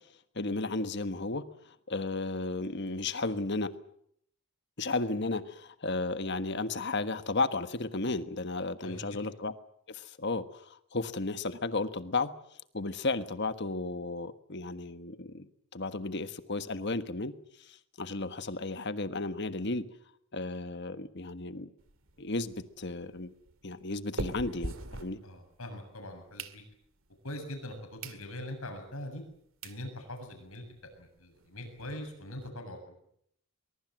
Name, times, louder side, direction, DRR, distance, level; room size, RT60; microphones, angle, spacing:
voice 1, 0.3-1.4 1.9-3.7 4.8-9.5 9.9-12.3 12.7-17.3 17.6-19.9 20.3-21.7 22.2-23.3 23.6-25.2, left 3 dB, 50° left, 11 dB, 1.4 m, -34 dB
voice 2, 8.8-9.2 25.2-26.6 27.2-29.2 29.6-30.7 30.9-33.0, left 1 dB, 70° left, 5 dB, 7.5 m, -42 dB
sound 1, 21.8-25.7 26.1-27.1 27.6-27.7 28.0-28.2 28.7-28.8 29.3-29.4 29.6-29.8 30.3-30.4 30.5-30.7 30.9-31.0 31.3-32.5, right 2 dB, 60° right, 2.1 m, -42 dB
23.0 x 22.0 x 7.8 m, 0.69 s
head